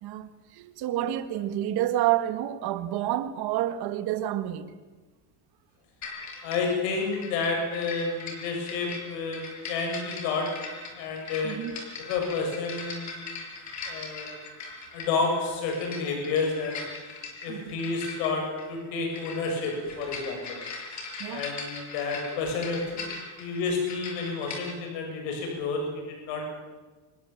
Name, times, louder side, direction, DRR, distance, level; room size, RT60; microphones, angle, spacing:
voice 1, 0.0-4.7 11.4-11.8 17.5-17.8 21.2-21.5, right 12 dB, 50° right, 2.0 m, -29 dB
sound 1, 6.0-24.8, left 4 dB, 35° left, 6.1 m, -40 dB
voice 2, 6.4-10.5 10.9-11.6 12.1-13.3 13.9-14.5 14.9-16.9 17.4-20.6 21.3-23.0 23.4-26.5, left 4 dB, 80° left, 7.8 m, -30 dB
27.0 x 21.5 x 7.4 m
cardioid pair, 165°, 50 cm